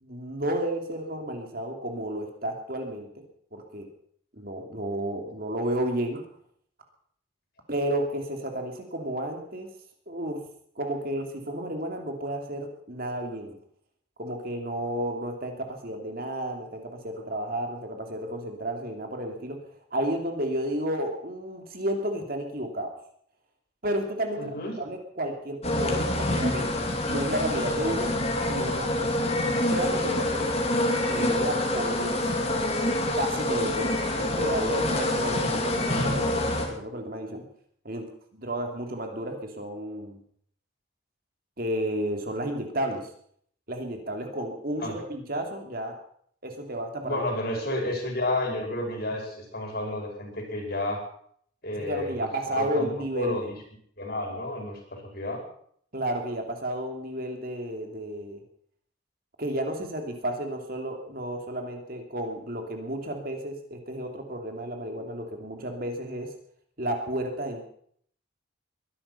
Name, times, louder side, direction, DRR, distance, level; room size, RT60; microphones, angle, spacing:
voice 1, 0.0-3.2 3.5-3.9 4.4-6.2 7.7-9.7 10.1-10.4 10.8-13.6 14.2-19.6 19.9-22.9 23.8-24.5 24.8-28.1 28.5-29.1 29.7-30.5 31.0-32.5 33.1-37.5 37.8-38.1 38.3-40.2 41.6-43.1 43.7-45.9 46.4-47.2 47.6-47.7 51.8-53.4 55.9-58.4 59.4-66.3 66.8-67.7, right 1 dB, 45° right, 4 dB, 2.9 m, -32 dB
voice 2, 24.3-24.7 44.8-45.0 47.0-51.0 51.6-52.3 52.6-53.6 54.0-55.4, left 1 dB, 50° left, 2 dB, 5.0 m, -31 dB
sound 1, 25.6-36.7, left 1 dB, 30° left, 2.8 m, -26 dB
21.5 x 11.5 x 5.7 m, 0.62 s
head